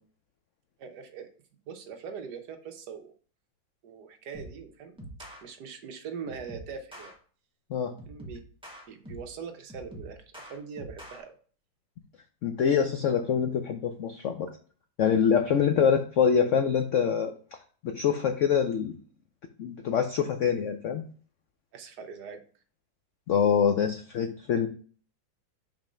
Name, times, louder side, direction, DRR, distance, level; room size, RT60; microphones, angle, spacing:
voice 1, 0.8-1.3 1.7-3.1 3.8-4.9 5.4-7.1 8.1-8.4 8.9-10.2 10.5-11.3 21.7-22.4, right 6 dB, 70° right, 6 dB, 1.3 m, -41 dB
sound 1, 4.3-4.6 5.0-5.4 6.3-7.1 8.0-9.4 9.7-11.2, right 1 dB, 5° right, 1.1 m, -45 dB
voice 2, 12.4-14.5 15.0-17.6 17.8-18.9 19.6-21.0 23.3-24.7, left 7 dB, 90° left, 7 dB, 0.6 m, -25 dB
5.2 x 3.7 x 5.0 m, 0.42 s
omnidirectional pair, 2.0 m